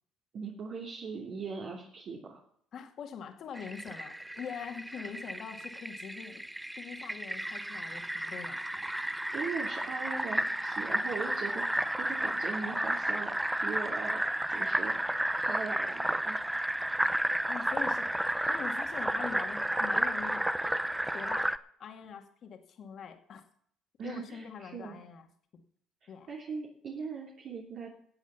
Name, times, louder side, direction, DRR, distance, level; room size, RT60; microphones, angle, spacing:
voice 1, 0.3-2.4 9.1-13.3 13.6-14.2 14.5-16.4 16.9-17.0 24.0-25.0 26.3-27.9, right 5 dB, 50° right, -1 dB, 2.8 m, -40 dB
voice 2, 2.7-6.4 6.8-8.7 17.5-20.4 21.1-23.4 24.0-25.3 26.1-26.3, left 7 dB, 55° left, 5 dB, 2.3 m, -43 dB
Fill (with liquid), 3.5-21.6, right 1 dB, 5° right, 0.7 m, -32 dB
14.0 x 8.2 x 7.1 m, 0.63 s
cardioid pair, 100°, 0 cm